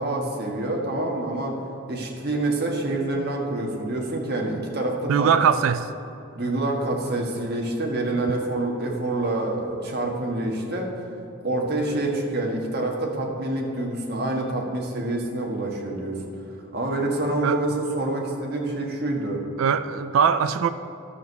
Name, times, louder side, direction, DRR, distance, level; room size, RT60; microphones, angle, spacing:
voice 1, 0.0-1.6 1.9-5.3 6.3-10.9 11.4-16.2 16.7-19.4, right 2 dB, 50° right, 0 dB, 1.5 m, -27 dB
voice 2, 5.1-5.9 17.4-17.6 19.6-20.7, right 7 dB, 80° right, 11 dB, 0.4 m, -21 dB
12.0 x 6.3 x 6.7 m, 2.8 s
head